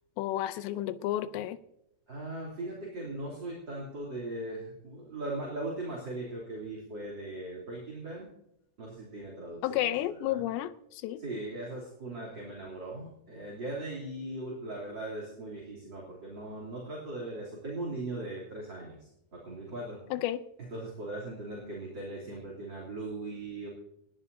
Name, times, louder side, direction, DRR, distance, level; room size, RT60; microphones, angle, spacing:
voice 1, 0.2-1.6 9.6-11.2 20.1-20.4, left 13 dB, 85° left, 2.9 m, -31 dB
voice 2, 2.1-8.3 8.8-10.4 11.2-20.0 20.6-23.7, right 2 dB, 30° right, 3.2 m, -39 dB
20.5 x 14.5 x 2.8 m
omnidirectional pair, 5.1 m